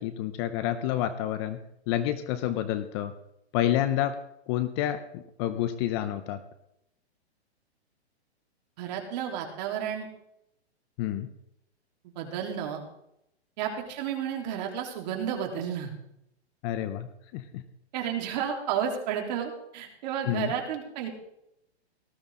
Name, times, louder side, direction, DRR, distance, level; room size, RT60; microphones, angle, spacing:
voice 1, 0.0-1.6 1.9-3.1 3.5-4.2 4.5-6.4 11.0-11.3 16.6-17.6 20.3-20.5, left 12 dB, 25° left, 11 dB, 0.7 m, -29 dB
voice 2, 8.8-10.1 12.0-12.8 13.6-15.9 17.9-21.1, right 8 dB, 40° right, 2 dB, 3.7 m, -32 dB
19.0 x 14.5 x 3.8 m, 0.80 s
hypercardioid pair, 155°, 33 cm